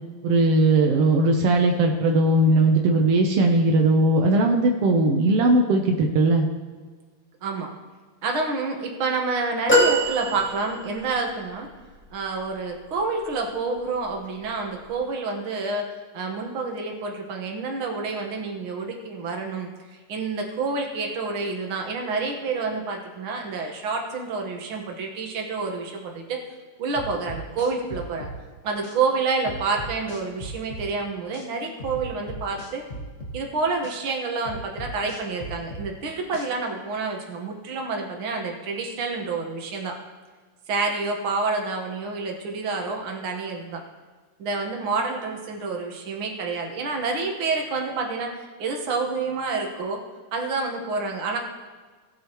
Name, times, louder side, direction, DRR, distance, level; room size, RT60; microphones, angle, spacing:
voice 1, 0.2-6.5, right 2 dB, 80° right, 2 dB, 1.3 m, -19 dB
voice 2, 8.2-11.7 12.1-15.8 16.1-26.4 26.8-28.3 28.6-32.8 33.3-39.9 40.7-43.8 44.4-50.0 50.3-51.4, right 4 dB, 55° right, 1 dB, 1.7 m, -28 dB
sound 1, 9.7-11.1 11.8-11.9, equal, 5° left, 1.0 m, -22 dB
sound 2, 27.0-28.4 28.8-29.0 29.5-30.9 31.3-31.5 31.8-33.4 33.8-34.0 34.5-35.9 36.3-36.5, right 1 dB, 60° left, 0.7 m, -37 dB
18.0 x 8.3 x 3.0 m, 1.4 s
omnidirectional pair, 3.9 m